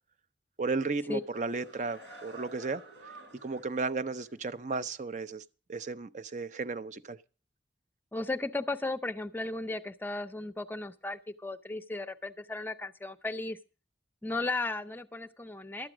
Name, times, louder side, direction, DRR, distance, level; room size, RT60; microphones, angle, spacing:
voice 1, 0.6-2.8 3.4-7.2, right 3 dB, 40° right, 0.6 m, -34 dB
sound 1, 1.1-3.8 4.2-4.3, right 2 dB, 90° right, 4.6 m, -51 dB
voice 2, 8.1-13.6 14.2-15.9, left 2 dB, 10° left, 0.6 m, -35 dB
12.5 x 8.8 x 6.1 m
head